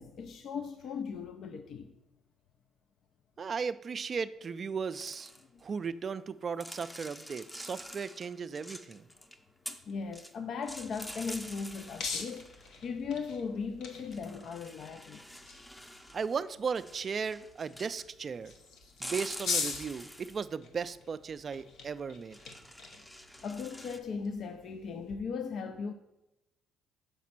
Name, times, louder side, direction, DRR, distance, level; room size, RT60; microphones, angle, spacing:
voice 1, 0.0-1.9 5.5-5.6 9.7-15.2 23.4-25.9, left 5 dB, 60° left, 0.4 m, -38 dB
voice 2, 3.4-5.3 5.6-9.1 16.1-18.5 19.0-22.4, right 5 dB, 40° right, 0.3 m, -36 dB
sound 1, 4.9-5.6 6.6-9.4 9.7-10.3 10.6-12.8 14.1-16.4 16.7-18.1 19.0-20.4 22.2-24.0, equal, 10° left, 0.6 m, -47 dB
sound 2, 10.7-25.2, left 5 dB, 75° left, 0.9 m, -43 dB
6.6 x 4.1 x 5.9 m
cardioid pair, 100°, 0 cm